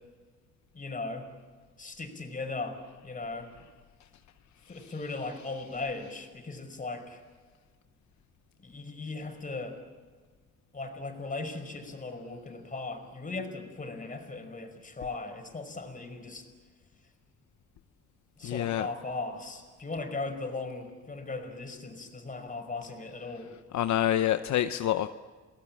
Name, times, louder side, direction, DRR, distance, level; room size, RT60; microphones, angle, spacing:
voice 1, 0.7-1.3 1.8-3.5 4.7-7.2 8.6-9.8 10.7-16.4 18.4-23.5, left 3 dB, 25° left, 5 dB, 5.2 m, -38 dB
voice 2, 18.4-18.9 23.7-25.1, left 12 dB, 70° left, 10 dB, 0.8 m, -27 dB
30.0 x 19.0 x 8.8 m, 1.5 s
cardioid pair, 90°, 30 cm